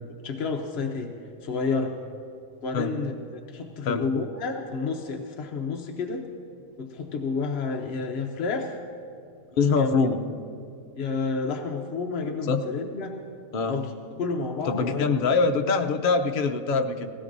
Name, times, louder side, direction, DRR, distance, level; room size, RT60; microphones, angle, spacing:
voice 1, 0.2-1.1 1.4-1.9 2.6-3.1 3.5-6.2 6.8-8.8 9.8-9.9 11.0-13.1 13.7-13.9 14.2-15.0, left 4 dB, 55° left, 2 dB, 0.8 m, -30 dB
voice 2, 9.6-10.2 12.5-12.6 13.5-13.8 14.6-17.1, left 4 dB, 75° left, 5 dB, 0.4 m, -23 dB
19.5 x 16.5 x 2.6 m, 2.5 s
omnidirectional pair, 1.8 m